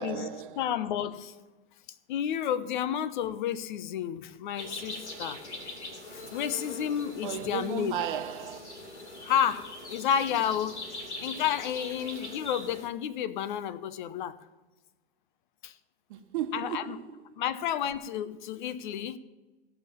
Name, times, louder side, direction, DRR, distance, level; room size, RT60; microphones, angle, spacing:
voice 1, 0.0-0.6 7.2-8.6 16.1-17.4, right 10 dB, 45° right, 1.3 m, -35 dB
voice 2, 0.6-1.3 2.1-5.4 6.1-8.0 9.2-10.8 11.2-14.4 15.6-15.7 16.5-17.0 17.4-19.2, left 9 dB, 45° left, 0.8 m, -31 dB
sound 1, 4.6-12.9, left 2 dB, 85° left, 2.6 m, -42 dB
17.0 x 5.8 x 7.5 m
figure-of-eight pair, 110°, 34 cm